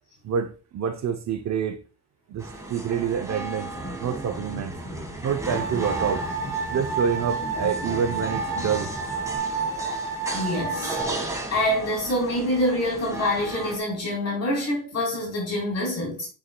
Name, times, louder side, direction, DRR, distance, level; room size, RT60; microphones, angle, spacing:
voice 1, 0.2-1.8 2.3-3.7 4.0-4.7 5.2-6.2 6.7-8.9, right 7 dB, 50° right, 0.7 m, -27 dB
sound 1, 2.4-13.8, right 2 dB, 10° right, 1.7 m, -35 dB
sound 2, 3.7-9.4, equal, 30° left, 3.9 m, -38 dB
sound 3, 5.4-11.0, right 4 dB, 90° right, 2.4 m, -30 dB
voice 2, 10.3-16.3, left 1 dB, 45° left, 3.9 m, -26 dB
9.6 x 6.4 x 2.3 m
cardioid pair, 140°, 36 cm